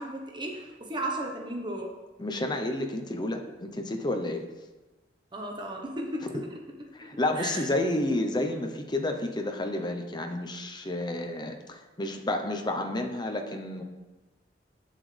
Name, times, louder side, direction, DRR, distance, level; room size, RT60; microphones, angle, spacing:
voice 1, 0.0-1.9 5.3-6.5 7.3-7.6, right 1 dB, 25° right, 1 dB, 1.1 m, -35 dB
voice 2, 2.2-4.4 6.9-13.8, left 1 dB, 25° left, 4 dB, 0.8 m, -30 dB
8.3 x 7.6 x 3.4 m, 1.2 s
head